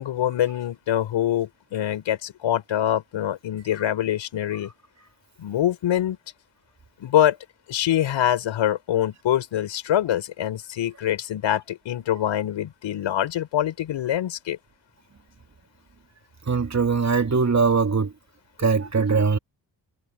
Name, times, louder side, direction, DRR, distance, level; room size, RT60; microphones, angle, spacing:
voice 1, 0.0-4.7 5.4-6.2 7.0-7.4 7.7-14.6, left 11 dB, 75° left, 6.0 m, -24 dB
voice 2, 16.5-18.1 18.6-19.4, right 5 dB, 35° right, 2.8 m, -21 dB
supercardioid pair, 50°, 46 cm